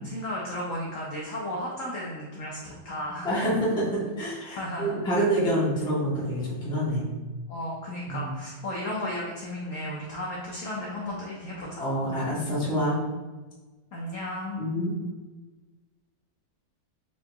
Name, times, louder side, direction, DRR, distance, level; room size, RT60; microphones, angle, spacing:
voice 1, 0.0-3.3 4.6-4.9 7.5-11.8 13.9-14.7, left 1 dB, 85° left, -3 dB, 0.7 m, -34 dB
voice 2, 3.2-7.1 8.1-8.3 11.8-13.0 14.6-14.9, equal, 5° left, -8 dB, 0.6 m, -27 dB
3.9 x 3.7 x 2.2 m, 1.3 s
omnidirectional pair, 2.1 m